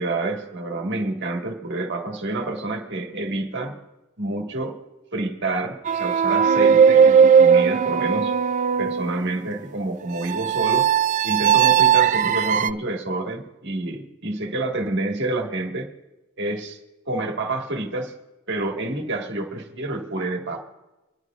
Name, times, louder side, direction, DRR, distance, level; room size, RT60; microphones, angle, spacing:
voice 1, 0.0-3.8 4.2-4.8 5.1-8.3 8.8-10.9 11.2-15.9 16.4-16.8 17.0-18.1 18.5-20.7, right 2 dB, 60° right, 3 dB, 1.6 m, -28 dB
sound 1, 5.9-9.2 10.3-12.7, right 7 dB, 35° right, 0.3 m, -17 dB
26.0 x 11.0 x 2.4 m, 1.1 s
head